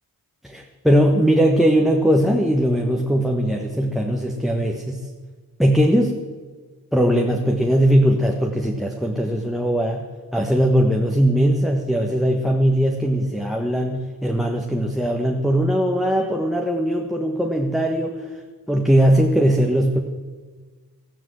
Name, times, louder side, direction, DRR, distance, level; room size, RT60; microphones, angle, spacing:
voice 1, 0.4-5.0 5.6-6.2 6.9-10.0 10.3-18.4 18.7-20.0, equal, ahead, 1 dB, 1.3 m, -20 dB
13.5 x 9.8 x 7.7 m, 1.4 s
cardioid pair, 60°, 38 cm